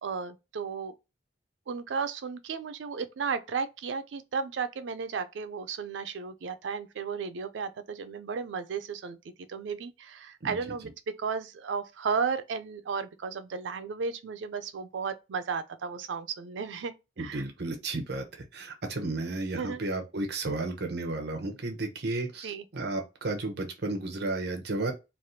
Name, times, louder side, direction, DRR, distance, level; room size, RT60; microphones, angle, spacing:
voice 1, 0.0-0.9 1.7-9.2 9.5-10.9 11.2-17.4 19.6-19.8 22.4-22.6, right 5 dB, 85° right, 0.4 m, -34 dB
voice 2, 17.2-24.9, right 2 dB, 65° right, 0.8 m, -33 dB
3.3 x 2.4 x 2.6 m
head